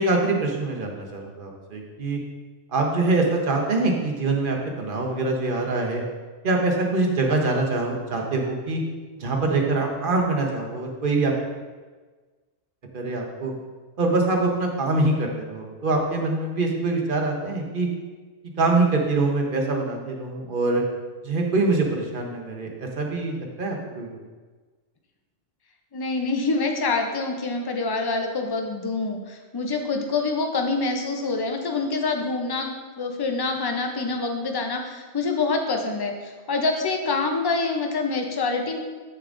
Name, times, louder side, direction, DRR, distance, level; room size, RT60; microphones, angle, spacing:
voice 1, 0.0-2.2 2.7-6.0 6.4-8.8 9.2-11.3 12.9-13.5 14.0-17.9 18.6-20.8 21.2-24.1, right 3 dB, 45° right, 1 dB, 1.1 m, -24 dB
voice 2, 25.9-32.7 33.0-38.8, left 3 dB, 30° left, 4 dB, 0.4 m, -26 dB
8.1 x 6.6 x 2.5 m, 1.4 s
omnidirectional pair, 1.3 m